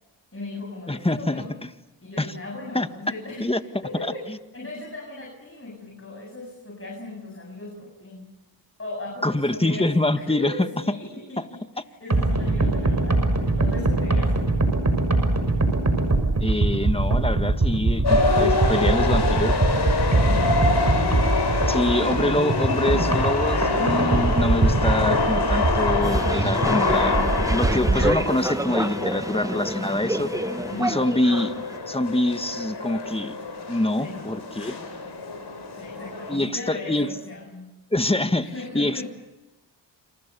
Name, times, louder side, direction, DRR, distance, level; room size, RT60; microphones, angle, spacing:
voice 1, 0.3-1.5 2.0-3.5 3.8-8.3 8.8-11.6 12.0-14.5 20.2-20.6 30.7-31.0 34.0-34.3 34.7-35.1 35.7-37.8 38.4-39.0, left 2 dB, 30° left, 1 dB, 7.8 m, -37 dB
voice 2, 0.9-1.4 2.2-2.3 2.7-2.9 3.4-3.6 4.0-4.4 9.2-10.7 11.4-11.5 12.6-12.7 16.4-19.5 21.7-27.2 27.5-30.3 30.8-31.5 31.9-33.3 33.7-34.8 36.3-37.1 37.9-39.0, left 1 dB, 10° left, 9 dB, 1.7 m, -25 dB
sound 1, 12.1-28.1, right 2 dB, 35° right, 6.4 m, -22 dB
sound 2, 18.0-36.4, left 3 dB, 60° left, 7.1 m, -26 dB
sound 3, 26.0-31.8, right 1 dB, 5° right, 1.1 m, -29 dB
29.5 x 27.5 x 7.0 m, 1.1 s
cardioid pair, 55°, 46 cm